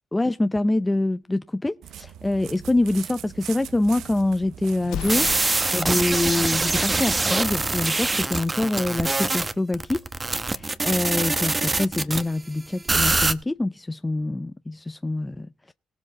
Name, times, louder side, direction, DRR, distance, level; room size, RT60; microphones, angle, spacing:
voice 1, 0.1-5.3 5.7-10.0 10.4-15.7, left 2 dB, 15° left, 0.5 m, -25 dB
sound 1, 1.8-8.0, right 10 dB, 80° right, 0.8 m, -41 dB
Explosion, 4.8-6.0, left 10 dB, 85° left, 0.6 m, -34 dB
sound 2, 5.0-12.2 12.9-13.3, right 3 dB, 20° right, 1.2 m, -24 dB
19.5 x 7.4 x 4.1 m
cardioid pair, 90°, 0 cm